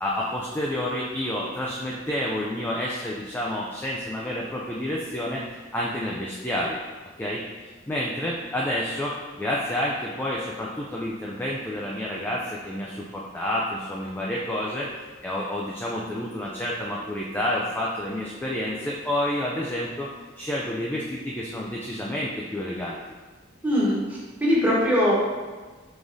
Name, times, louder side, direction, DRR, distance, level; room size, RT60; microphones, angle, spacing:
voice 1, 0.0-6.8 7.2-7.4 7.9-14.9 15.2-20.1 20.4-23.0, left 1 dB, 10° left, -4 dB, 0.3 m, -29 dB
voice 2, 23.6-24.0 24.4-25.2, equal, 10° right, -7 dB, 1.1 m, -20 dB
4.9 x 3.7 x 2.6 m, 1.3 s
head